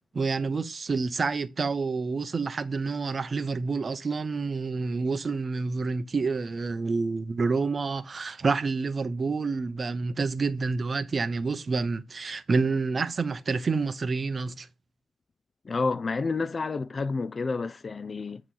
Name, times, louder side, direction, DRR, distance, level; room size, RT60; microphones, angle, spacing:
voice 1, 0.1-14.7, right 4 dB, 35° right, 0.6 m, -28 dB
voice 2, 15.6-18.4, left 4 dB, 30° left, 0.4 m, -29 dB
8.1 x 3.0 x 3.8 m
cardioid pair, 90°, 0 cm